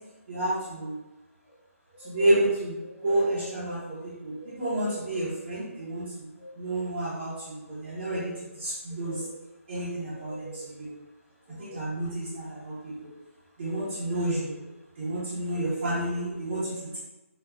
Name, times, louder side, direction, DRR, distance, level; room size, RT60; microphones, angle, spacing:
voice 1, 0.3-1.0 1.9-6.1 6.4-9.3 9.7-10.9 11.5-13.1 13.6-14.6 15.0-17.0, right 1 dB, 40° right, -9 dB, 0.7 m, -30 dB
3.4 x 2.3 x 2.2 m, 1.0 s
figure-of-eight pair, 160°, 8 cm